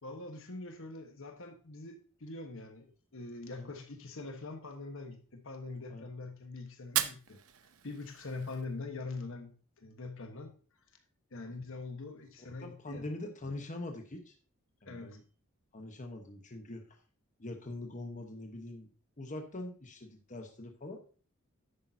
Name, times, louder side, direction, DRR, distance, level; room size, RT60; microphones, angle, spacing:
voice 1, 0.0-7.4 7.8-10.5 11.3-13.1 14.9-15.1, left 3 dB, 65° left, 6 dB, 1.3 m, -43 dB
Fire, 6.8-8.8, right 11 dB, 80° right, 0.7 m, -37 dB
voice 2, 12.6-14.3 14.8-15.2 15.7-16.8 17.4-18.9 19.2-21.0, left 2 dB, 35° left, 3 dB, 1.1 m, -43 dB
10.5 x 8.5 x 2.8 m, 0.39 s
head